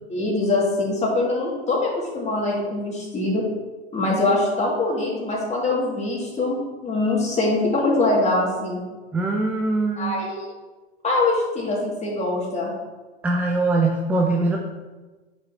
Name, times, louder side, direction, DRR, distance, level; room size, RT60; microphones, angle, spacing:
voice 1, 0.1-3.4 3.9-6.6 6.8-8.8 10.0-10.3 11.0-12.7, left 2 dB, 20° left, -3 dB, 2.3 m, -23 dB
voice 2, 9.1-10.1 13.2-14.6, right 2 dB, 5° right, 0 dB, 0.4 m, -22 dB
8.7 x 5.9 x 2.9 m, 1.3 s
figure-of-eight pair, 100°, 34 cm